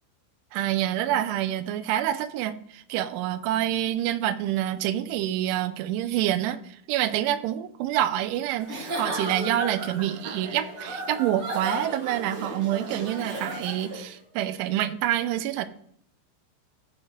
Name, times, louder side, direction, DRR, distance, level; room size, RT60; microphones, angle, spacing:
voice 1, 0.5-2.5 2.9-6.6 6.9-15.7, right 12 dB, 80° right, 11 dB, 3.0 m, -27 dB
Giggle / Chuckle chortle, 8.6-14.1, right 1 dB, 40° right, 2.2 m, -35 dB
15.0 x 6.2 x 3.2 m, 0.67 s
omnidirectional pair, 5.7 m